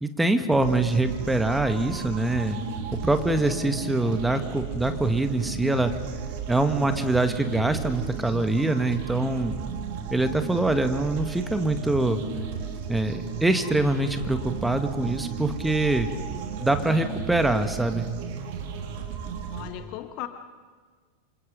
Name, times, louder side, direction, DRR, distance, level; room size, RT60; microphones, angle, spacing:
voice 1, 0.0-2.6 2.9-5.9 6.5-9.6 10.1-12.2 12.9-16.1 16.6-18.1, right 2 dB, 5° right, 7 dB, 1.9 m, -24 dB
sound 1, 0.5-19.7, right 7 dB, 50° right, 3.0 m, -34 dB
voice 2, 19.5-20.3, left 14 dB, 40° left, 8 dB, 1.6 m, -36 dB
27.5 x 26.5 x 5.4 m, 1.5 s
figure-of-eight pair, 90°, 0 cm